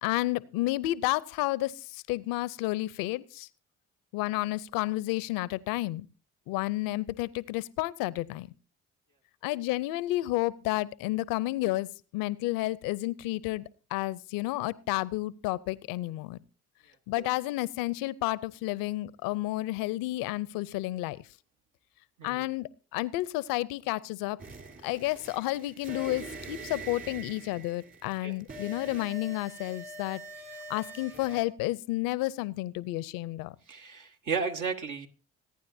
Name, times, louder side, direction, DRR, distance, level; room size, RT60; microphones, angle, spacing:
voice 1, 0.0-3.5 4.1-6.1 6.5-8.5 9.4-16.4 17.1-21.2 22.2-24.4 24.8-30.2 30.7-33.6, left 18 dB, 80° left, 21 dB, 0.6 m, -31 dB
sound 1, 24.4-31.4, right 2 dB, 35° right, 3.7 m, -44 dB
voice 2, 33.7-35.1, right 5 dB, 65° right, 5 dB, 1.6 m, -33 dB
26.0 x 9.5 x 2.7 m, 0.35 s
hypercardioid pair, 50°, 34 cm